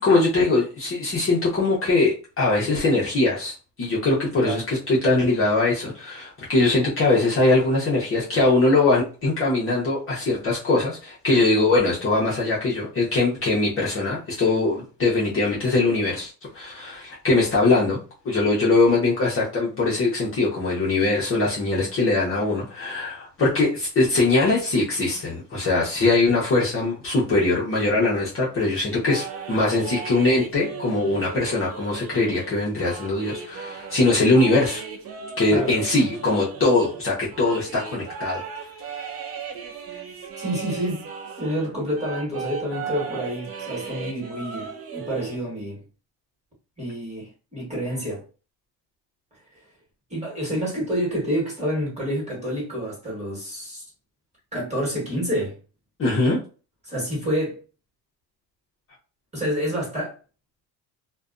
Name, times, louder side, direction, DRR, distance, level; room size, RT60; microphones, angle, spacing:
voice 1, 0.0-18.0 18.2-34.8 35.4-38.4 56.0-56.4, left 2 dB, 30° left, 0.7 m, -21 dB
sound 1, 28.9-41.7 41.9-45.4, right 6 dB, 35° right, 0.4 m, -36 dB
voice 2, 40.4-41.1 41.4-45.8 46.8-48.2 50.1-53.8 54.5-55.6 56.8-57.6 59.3-60.1, equal, 15° right, 1.3 m, -28 dB
2.5 x 2.2 x 2.4 m
cardioid pair, 135°, 43 cm